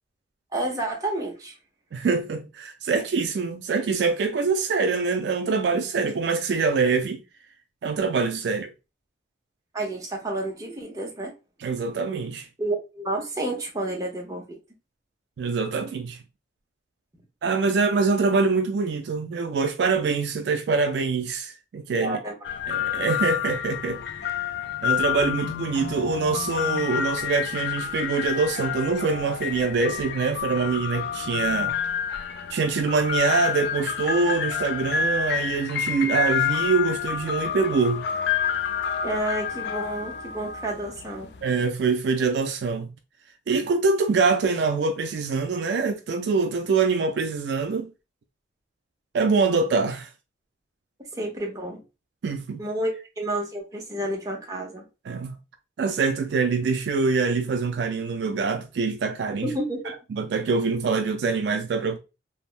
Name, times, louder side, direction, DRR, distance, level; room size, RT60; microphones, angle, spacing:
voice 1, 0.5-1.5 9.7-11.3 12.6-14.6 22.0-22.3 39.0-41.3 51.1-51.8 52.6-54.8 59.4-59.9, right 1 dB, 20° right, 0.7 m, -30 dB
voice 2, 1.9-7.2 7.8-8.7 11.6-12.5 15.4-16.2 17.4-22.2 22.7-24.0 24.8-31.8 32.5-38.1 41.4-42.9 43.5-47.9 49.1-50.1 52.2-52.6 55.1-55.4 55.8-59.5 59.8-62.0, right 4 dB, 70° right, 0.3 m, -24 dB
sound 1, 22.4-41.5, left 8 dB, 65° left, 0.3 m, -29 dB
3.4 x 2.0 x 2.4 m
head